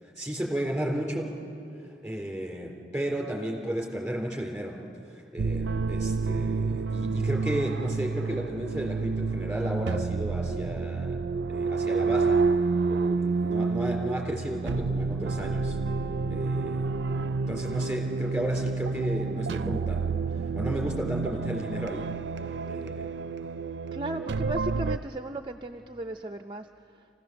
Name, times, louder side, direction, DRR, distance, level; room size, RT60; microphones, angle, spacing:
voice 1, 0.0-1.4 1.8-4.8 5.0-11.2 11.5-12.4 12.9-15.8 16.3-16.9 17.5-22.1 22.7-23.1, right 1 dB, 5° right, -1 dB, 3.7 m, -33 dB
sound 1, 5.4-25.0, right 4 dB, 90° right, 0.4 m, -29 dB
voice 2, 23.9-27.1, right 1 dB, 25° right, 6 dB, 0.5 m, -36 dB
27.5 x 16.5 x 6.9 m, 2.9 s
head